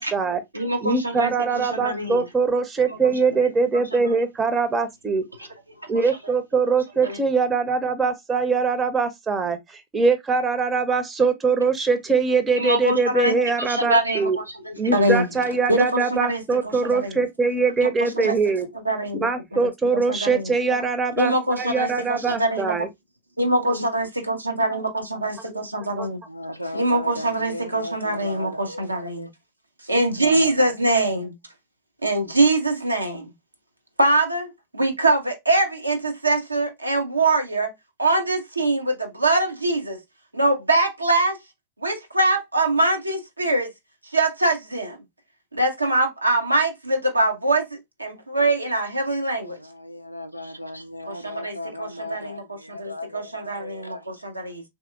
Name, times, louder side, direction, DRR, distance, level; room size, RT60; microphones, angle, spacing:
voice 1, 0.0-0.4 0.8-5.2 5.9-14.4 14.8-18.7 19.2-22.9 25.5-25.6 26.0-26.1, right 4 dB, 20° right, 0.6 m, -22 dB
voice 2, 0.5-2.2 2.9-3.1 3.9-4.2 5.8-5.9 6.2-6.3 6.7-6.8 7.0-7.2 12.5-15.3 15.7-17.2 18.0-18.3 18.8-19.3 19.9-20.5 21.2-22.7 23.4-26.2 26.7-29.3 29.8-31.3 32.0-33.3 34.0-37.7 38.0-40.0 40.3-41.4 41.8-43.7 44.1-45.0 45.5-49.6 51.1-54.6, right 2 dB, 85° right, 0.6 m, -23 dB
voice 3, 26.3-29.3 49.4-54.2, left 1 dB, 90° left, 0.4 m, -36 dB
3.4 x 2.8 x 2.3 m
figure-of-eight pair, 90°, 0 cm